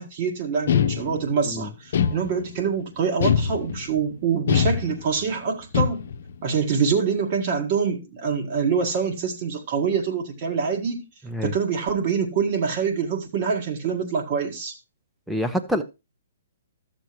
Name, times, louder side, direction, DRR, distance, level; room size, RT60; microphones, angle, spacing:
voice 1, 0.0-6.1 6.4-11.0 11.4-14.7, right 6 dB, 45° right, 1.8 m, -25 dB
sound 1, 0.7-1.4 1.9-2.7 3.2-4.0 4.5-5.3 5.7-6.3, left 8 dB, 60° left, 0.8 m, -23 dB
voice 2, 15.3-15.8, equal, ahead, 0.8 m, -26 dB
13.0 x 6.9 x 3.1 m
figure-of-eight pair, 130°, 0 cm